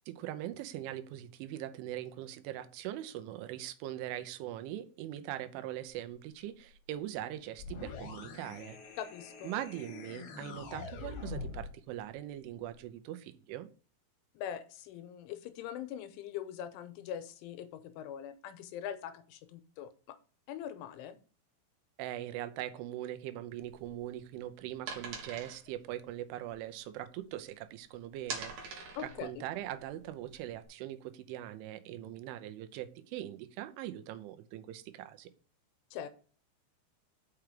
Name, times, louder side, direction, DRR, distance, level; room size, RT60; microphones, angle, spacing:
voice 1, 0.1-8.8 9.4-13.7 22.0-35.3, right 13 dB, 85° right, 3.2 m, -41 dB
sound 1, 7.6-11.8, left 4 dB, 70° left, 2.8 m, -44 dB
voice 2, 9.0-9.5 14.3-20.2 20.5-21.2 29.0-29.3 35.9-36.1, left 9 dB, 85° left, 3.2 m, -42 dB
sound 2, 23.6-27.6 27.9-30.7, right 5 dB, 60° right, 2.4 m, -45 dB
6.2 x 6.0 x 5.0 m
omnidirectional pair, 5.5 m